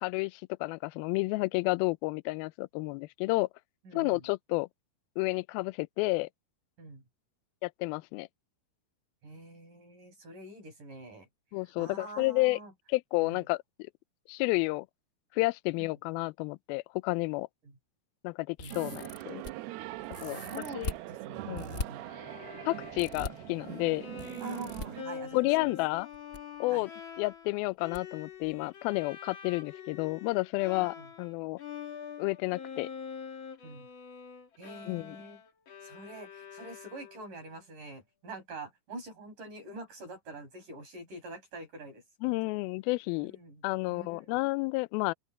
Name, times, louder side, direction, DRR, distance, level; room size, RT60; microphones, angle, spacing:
voice 1, 0.0-3.5 3.9-4.7 5.2-6.3 7.6-8.3 11.5-12.6 12.9-13.6 14.3-14.9 15.3-17.5 18.2-19.4 20.2-20.4 20.8-20.9 21.5-21.7 22.7-24.0 25.3-26.1 26.6-26.9 27.2-31.6 32.2-32.9 34.9-35.2 42.2-43.3 43.6-45.1, left 23 dB, 80° left, 2.3 m, -31 dB
voice 2, 3.9-4.3 6.8-7.0 9.2-11.3 11.8-12.7 13.2-13.4 18.6-19.0 20.2-22.1 24.4-25.8 26.7-26.9 30.7-31.1 33.6-33.9 34.6-35.4 35.8-42.6 43.2-43.6 43.9-44.4, right 2 dB, 55° right, 7.9 m, -46 dB
sound 1, 18.6-19.5 20.1-21.0 21.5-21.9 23.0-23.3 24.2-24.9 26.0-26.4 26.7-26.8 27.9-28.0 28.4-28.5, left 2 dB, 30° left, 1.5 m, -39 dB
sound 2, 18.7-25.0, right 16 dB, 85° right, 2.9 m, -42 dB
Bowed string instrument, 22.0-31.3 31.6-37.4, left 7 dB, 50° left, 1.6 m, -46 dB
open air
omnidirectional pair, 4.5 m